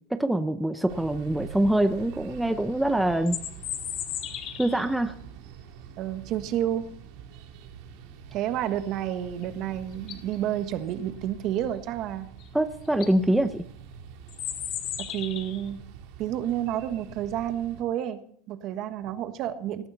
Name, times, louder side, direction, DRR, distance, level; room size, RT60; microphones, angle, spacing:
voice 1, 0.1-3.4 4.6-5.1 12.5-13.6, right 1 dB, 5° right, 9 dB, 0.7 m, -24 dB
sound 1, 0.9-17.8, right 7 dB, 65° right, 2.9 m, -46 dB
sound 2, 3.1-4.9 9.4-9.5 9.9-10.4 12.4-12.5 12.8-13.1 14.3-15.7, left 10 dB, 45° left, 2.4 m, -35 dB
voice 2, 6.0-6.8 8.3-12.3 15.1-15.8 16.2-18.2 18.5-19.9, right 11 dB, 45° right, 9 dB, 1.5 m, -30 dB
18.5 x 14.5 x 4.1 m, 0.63 s
supercardioid pair, 140°, 0 cm